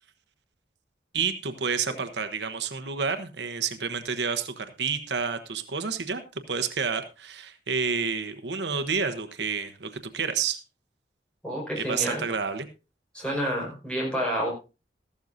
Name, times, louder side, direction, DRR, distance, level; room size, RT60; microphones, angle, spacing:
voice 1, 1.1-10.6 11.8-12.7, right 5 dB, 75° right, 8 dB, 1.0 m, -29 dB
voice 2, 11.4-12.3 13.1-14.5, equal, 5° left, -2 dB, 5.2 m, -29 dB
14.5 x 12.5 x 2.7 m, 0.30 s
head